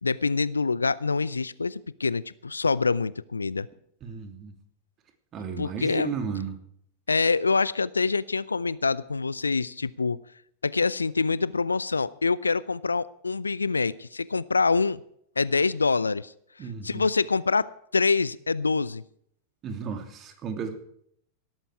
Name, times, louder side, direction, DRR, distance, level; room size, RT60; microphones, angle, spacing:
voice 1, 0.0-3.7 5.6-6.1 7.1-10.2 10.6-15.0 15.4-16.3 16.8-19.0, left 4 dB, 75° left, 21 dB, 0.5 m, -25 dB
voice 2, 4.0-4.5 5.3-6.5 16.6-17.1 19.6-20.8, right 6 dB, 30° right, 7 dB, 2.8 m, -34 dB
18.0 x 13.5 x 4.7 m, 0.69 s
figure-of-eight pair, 90°, 0 cm